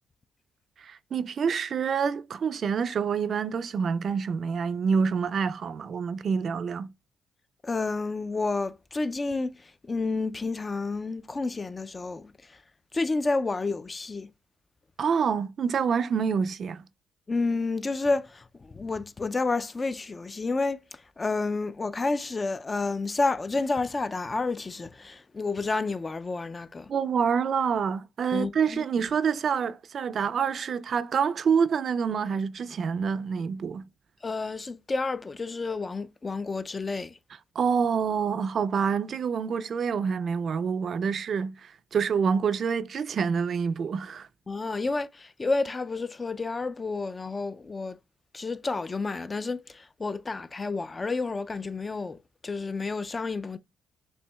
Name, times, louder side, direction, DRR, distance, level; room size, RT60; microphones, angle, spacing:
voice 1, 0.8-6.9 15.0-16.9 26.9-33.8 37.6-44.3, right 6 dB, 55° right, 0.3 m, -27 dB
voice 2, 7.6-12.3 12.9-14.3 17.3-20.8 21.2-26.9 28.3-28.8 34.2-37.2 44.5-48.0 48.3-53.6, left 3 dB, 25° left, 0.3 m, -30 dB
6.8 x 2.7 x 2.2 m
cardioid pair, 90°, 0 cm